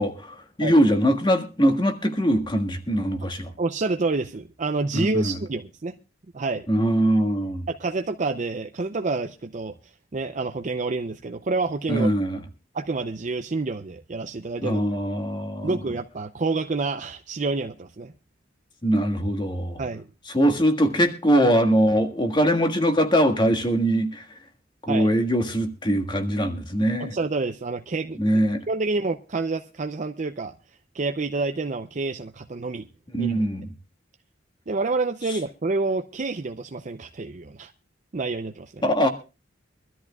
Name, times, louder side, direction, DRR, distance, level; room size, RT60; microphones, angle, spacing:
voice 1, 0.0-3.5 4.9-5.4 6.7-7.6 11.9-12.4 14.6-15.8 18.8-19.8 20.3-24.2 24.8-27.1 28.2-28.6 33.1-33.7 35.3-35.4 38.8-39.1, equal, 25° left, 1.6 m, -22 dB
voice 2, 3.6-6.0 6.3-6.7 7.7-9.7 10.1-12.1 12.7-14.8 15.6-18.1 19.8-20.1 24.9-25.1 27.0-28.2 28.7-30.5 30.9-32.9 33.2-33.4 34.7-37.7 38.1-38.8, right 3 dB, 40° right, 0.6 m, -28 dB
23.5 x 13.0 x 2.3 m
head